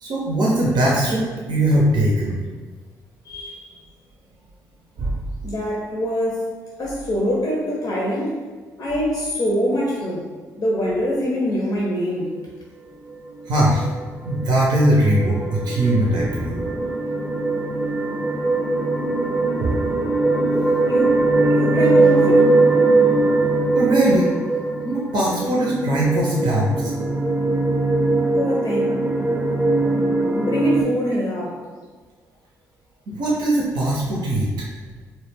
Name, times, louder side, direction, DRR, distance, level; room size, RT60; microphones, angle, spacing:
voice 1, 0.0-2.4 5.0-5.2 13.5-13.8 14.2-16.6 19.6-19.8 23.7-24.3 24.8-26.9 33.1-34.5, right 1 dB, 60° right, -4 dB, 0.5 m, -20 dB
voice 2, 3.2-3.7 5.4-6.5 6.8-8.4 8.8-10.3 10.6-12.3 20.9-21.2 21.4-22.5 28.4-29.0 30.4-31.6, equal, 50° left, -3 dB, 0.5 m, -24 dB
sound 1, 13.5-30.8, right 2 dB, 10° right, 0.6 m, -21 dB
2.1 x 2.1 x 3.2 m, 1.4 s
hypercardioid pair, 45°, 8 cm